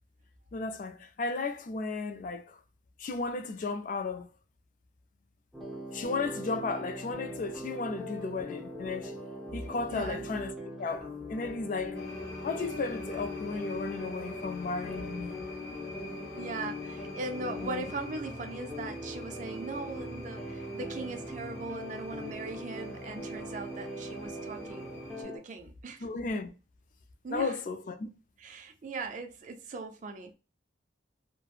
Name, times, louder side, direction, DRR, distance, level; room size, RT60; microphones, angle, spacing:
voice 1, 0.5-2.6 3.0-4.3 5.9-9.1 9.5-10.5 10.8-12.0 12.4-15.3 17.6-17.8 26.0-26.5 27.3-28.1, left 3 dB, 45° left, 0.3 m, -34 dB
sound 1, 5.5-25.4, left 1 dB, ahead, 0.6 m, -41 dB
voice 2, 9.9-10.3 16.3-26.1 27.2-27.6 28.4-30.3, right 3 dB, 45° right, 0.4 m, -40 dB
sound 2, 11.9-25.2, left 1 dB, 75° left, 0.8 m, -47 dB
3.1 x 2.0 x 2.3 m
head